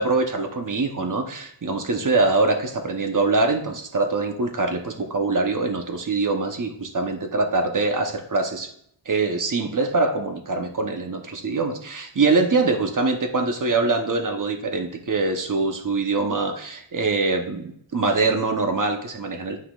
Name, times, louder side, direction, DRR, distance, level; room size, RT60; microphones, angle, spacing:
voice 1, 0.0-8.7 9.1-19.6, right 3 dB, 40° right, 4 dB, 1.0 m, -23 dB
10.0 x 5.7 x 2.4 m, 0.68 s
wide cardioid pair, 105°, 49 cm